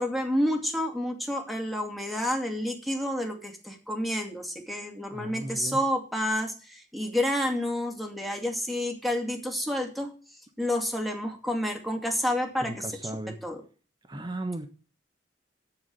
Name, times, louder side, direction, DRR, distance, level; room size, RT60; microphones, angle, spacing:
voice 1, 0.0-10.1 10.6-12.8 13.4-13.6, left 1 dB, ahead, 2 dB, 2.3 m, -29 dB
voice 2, 5.1-5.8 12.6-13.4 14.1-14.7, right 1 dB, 25° right, 7 dB, 1.2 m, -36 dB
14.0 x 4.8 x 7.8 m, 0.37 s
head